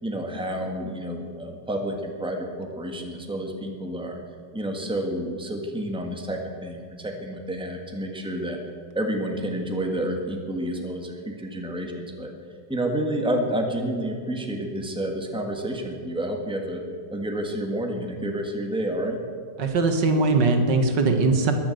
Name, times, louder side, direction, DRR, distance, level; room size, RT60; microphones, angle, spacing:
voice 1, 0.0-4.2 4.5-8.6 8.9-12.3 12.7-16.8 17.1-19.2, right 1 dB, 5° right, 2 dB, 1.6 m, -29 dB
voice 2, 19.6-21.5, right 3 dB, 85° right, 5 dB, 2.1 m, -20 dB
21.5 x 7.2 x 7.8 m, 2.2 s
omnidirectional pair, 1.8 m